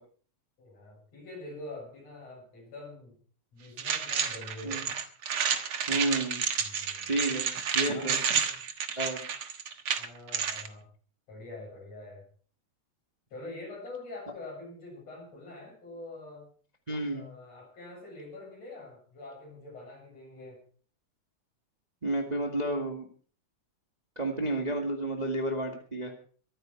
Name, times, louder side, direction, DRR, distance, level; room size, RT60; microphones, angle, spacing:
voice 1, 0.6-3.1 3.5-4.9 6.6-7.1 7.9-8.6 10.0-10.9 11.3-12.2 13.3-16.5 17.1-20.6, left 2 dB, 55° left, 0 dB, 8.6 m, -45 dB
sound 1, 3.8-10.7, right 7 dB, 55° right, 2.0 m, -30 dB
voice 2, 5.9-6.4 7.1-7.5 7.7-8.2 9.0-9.2 16.9-17.2 22.0-23.0 24.1-26.1, right 2 dB, 15° right, 2 dB, 1.7 m, -31 dB
24.0 x 9.2 x 4.6 m, 0.43 s
omnidirectional pair, 3.4 m